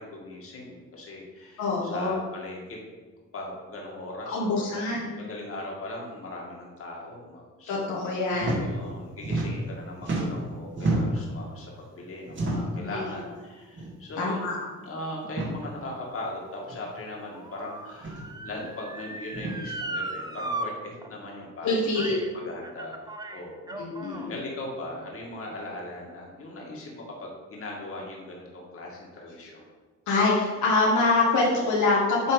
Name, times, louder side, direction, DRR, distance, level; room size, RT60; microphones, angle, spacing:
voice 1, 0.0-2.8 3.3-4.8 5.1-7.9 8.6-14.5 14.8-23.8 24.3-29.6, left 1 dB, 45° left, -2 dB, 1.9 m, -39 dB
voice 2, 1.6-2.1 4.2-5.2 7.7-8.6 12.7-13.0 14.2-14.7 21.6-22.1 23.8-24.3 30.1-32.3, left 3 dB, 75° left, -4 dB, 1.4 m, -25 dB
sound 1, 8.3-8.6 8.9-9.7 10.0-11.3 12.3-12.8 13.7-13.9 14.2-14.3 15.2-15.5 16.7-16.8 17.9-18.2 19.3-19.6, right 2 dB, 40° right, 2.0 m, -29 dB
Motor vehicle (road) / Siren, 15.5-20.7 21.0-21.1 21.9-22.3 22.6-24.3 25.0-25.1, right 2 dB, 15° right, 0.6 m, -38 dB
8.5 x 3.3 x 4.8 m, 1.3 s
cardioid pair, 90°, 30 cm